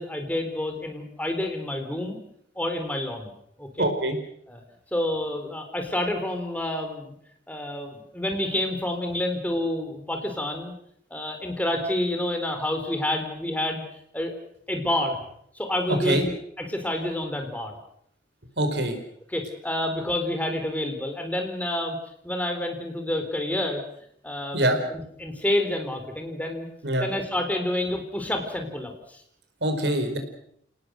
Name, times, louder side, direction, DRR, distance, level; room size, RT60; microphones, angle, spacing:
voice 1, 0.0-2.2 2.6-3.3 3.6-3.9 4.5-4.6 4.9-7.1 7.5-10.7 11.1-13.8 14.1-14.3 14.7-15.2 15.6-17.7 19.3-22.0 22.2-23.8 24.2-26.7 27.0-29.2, left 1 dB, 10° left, 5 dB, 4.0 m, -28 dB
voice 2, 3.8-4.2 15.9-16.2 18.6-19.0 24.5-24.8 26.8-27.1 29.6-30.2, right 1 dB, 75° right, 7 dB, 4.7 m, -24 dB
28.5 x 19.0 x 6.5 m, 0.70 s
head